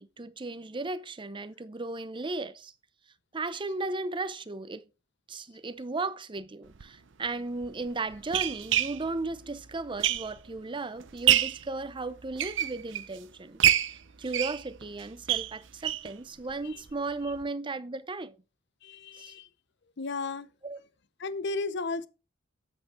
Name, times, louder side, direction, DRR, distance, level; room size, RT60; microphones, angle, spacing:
voice 1, 0.0-2.7 3.3-4.8 5.3-13.6 14.2-18.3 19.2-19.3 20.6-20.8, right 3 dB, 25° right, 0.7 m, -35 dB
sound 1, 6.7-6.8 7.6-10.6 11.0-11.7 12.2-13.2 13.6-16.1 16.5-16.6 16.9-17.0 17.3-17.4, right 11 dB, 70° right, 0.7 m, -27 dB
voice 2, 18.8-19.5 20.0-20.5 21.2-22.1, left 3 dB, 60° left, 0.8 m, -34 dB
8.2 x 8.1 x 3.7 m
head